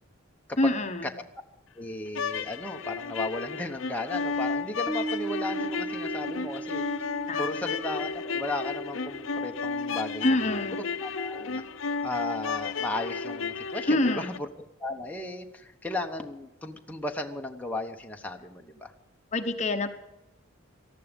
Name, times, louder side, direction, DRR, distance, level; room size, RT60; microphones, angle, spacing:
voice 1, 0.6-1.1 7.3-7.6 10.2-10.8 13.9-14.3 19.3-19.9, left 1 dB, 35° left, 7 dB, 1.0 m, -26 dB
voice 2, 1.8-6.8 7.4-11.6 12.0-14.5 14.8-18.9, left 2 dB, 5° left, 2 dB, 1.0 m, -35 dB
sound 1, 2.1-14.4, left 5 dB, 70° left, 0.8 m, -33 dB
Bass guitar, 4.9-12.0, right 3 dB, 40° right, 1.7 m, -39 dB
19.0 x 14.0 x 5.3 m, 0.96 s
head